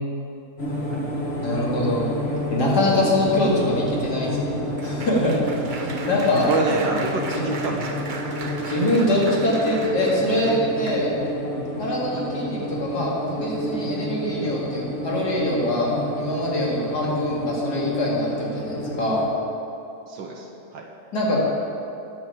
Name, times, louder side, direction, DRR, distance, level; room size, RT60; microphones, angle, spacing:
sound 1, 0.6-19.3, equal, 35° left, 1.9 m, -29 dB
voice 1, 1.4-2.1 2.5-4.3 4.8-5.3 5.7-6.5 8.6-11.1 11.8-15.9 16.2-19.2 21.1-21.6, left 1 dB, 55° left, -4 dB, 2.8 m, -23 dB
Applause, 3.4-11.4 12.0-12.3 12.5-12.7, right 3 dB, 60° right, 0.5 m, -38 dB
voice 2, 6.5-8.0 12.1-12.3 17.0-17.1 20.1-20.9, right 3 dB, 75° right, 1 dB, 1.6 m, -28 dB
10.5 x 7.1 x 8.3 m, 2.8 s
omnidirectional pair, 2.1 m